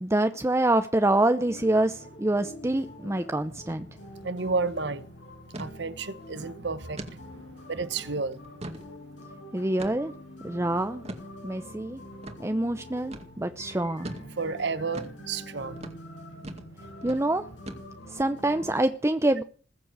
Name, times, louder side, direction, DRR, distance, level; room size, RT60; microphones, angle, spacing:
voice 1, 0.0-3.9 9.5-10.1 10.4-11.0 11.4-12.0 12.4-14.1 17.0-17.5 18.1-19.4, right 1 dB, 15° right, 0.7 m, -26 dB
sound 1, 1.4-18.8, left 1 dB, 80° left, 6.4 m, -46 dB
sound 2, 3.6-3.8 4.1-4.2 4.6-4.8 5.5-5.7 6.2-6.3 7.0-7.2 7.7-7.8 8.3-8.9 9.8-10.2 11.0-11.3 12.2-12.4 13.1-13.3 14.0-14.3 14.9-15.2 15.8-16.0 16.4-16.7 17.0-17.2 17.7-18.1, right 1 dB, 35° right, 2.2 m, -40 dB
voice 2, 4.2-5.0 5.6-7.3 7.7-8.4 14.4-15.8, right 4 dB, 65° right, 1.2 m, -31 dB
20.5 x 7.6 x 8.2 m
head